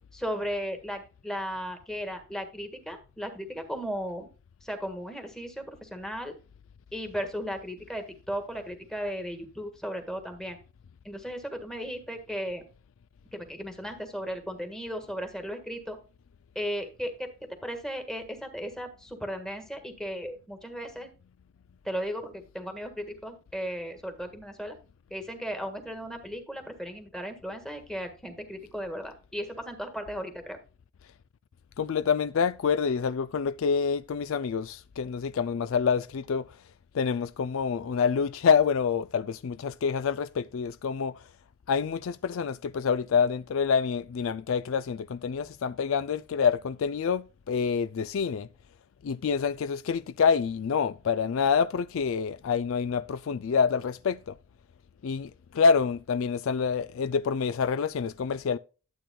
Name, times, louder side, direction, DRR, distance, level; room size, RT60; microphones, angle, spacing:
voice 1, 0.1-4.3 4.6-6.3 6.9-10.6 11.0-12.6 13.3-16.0 16.5-17.3 17.6-21.1 21.8-24.8 25.1-30.6, equal, 5° left, 1.6 m, -36 dB
voice 2, 31.8-36.5 36.9-41.2 41.7-48.5 49.0-54.3 55.0-58.6, left 6 dB, 60° left, 0.3 m, -27 dB
12.0 x 8.5 x 2.3 m
head